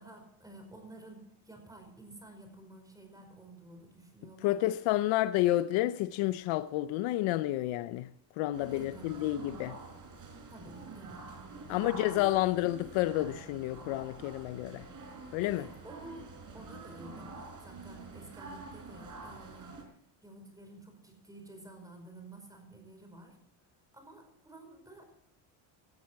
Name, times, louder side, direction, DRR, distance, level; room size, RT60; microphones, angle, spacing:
voice 1, 0.0-4.8 8.6-9.3 10.5-11.3 11.7-12.4 15.4-19.8 20.2-23.4 23.9-25.1, right 2 dB, 5° right, 5.0 m, -51 dB
voice 2, 4.4-8.1 8.4-9.8 11.7-14.9 15.3-15.6, left 15 dB, 75° left, 0.7 m, -30 dB
sound 1, 8.5-19.8, right 3 dB, 40° right, 5.1 m, -47 dB
18.0 x 13.5 x 4.7 m
cardioid pair, 140°, 48 cm